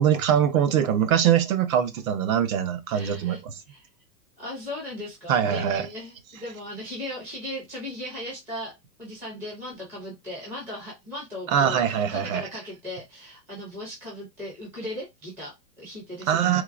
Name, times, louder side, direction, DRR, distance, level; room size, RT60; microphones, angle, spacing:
voice 1, 0.0-3.5 5.3-5.9 11.5-12.4 16.3-16.6, right 9 dB, 55° right, 0.7 m, -22 dB
voice 2, 2.9-3.4 3.7-3.9 4.4-8.7 9.0-16.6, left 1 dB, 5° right, 0.4 m, -37 dB
3.8 x 2.7 x 2.4 m
supercardioid pair, 155°, 50 cm